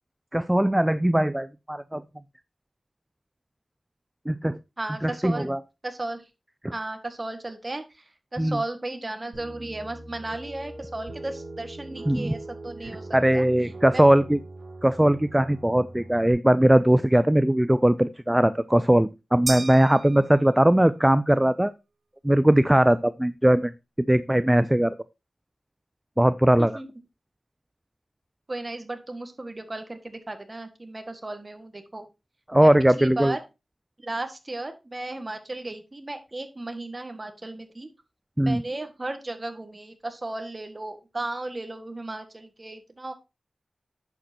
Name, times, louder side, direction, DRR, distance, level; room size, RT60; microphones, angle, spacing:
voice 1, 0.3-2.0 4.3-4.6 5.0-5.6 6.6-6.7 8.4-8.6 12.1-12.3 13.1-14.4 14.8-21.7 22.2-23.7 24.1-24.9 26.2-26.8 32.5-33.4 38.4-38.6, right 1 dB, 10° right, 14 dB, 0.4 m, -20 dB
voice 2, 4.8-5.5 5.8-6.2 6.7-7.8 8.3-14.0 26.6-26.9 28.5-32.0 32.6-32.7 33.0-33.4 34.0-37.9 38.5-43.1, right 2 dB, 30° right, 7 dB, 1.7 m, -35 dB
sound 1, 9.3-16.3, right 2 dB, 65° right, 3.5 m, -41 dB
sound 2, 19.5-20.9, right 3 dB, 50° right, 1.1 m, -35 dB
10.5 x 7.5 x 2.8 m, 0.26 s
wide cardioid pair, 80°, 0 cm